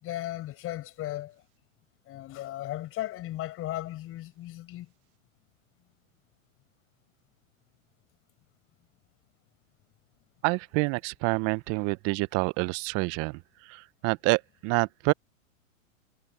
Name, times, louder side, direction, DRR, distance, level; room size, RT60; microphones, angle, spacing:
voice 1, 0.0-1.3 2.1-4.9, left 15 dB, 35° left, 7.1 m, -36 dB
voice 2, 10.4-15.1, right 29 dB, 35° right, 1.0 m, -28 dB
hypercardioid pair, 110°, 40 cm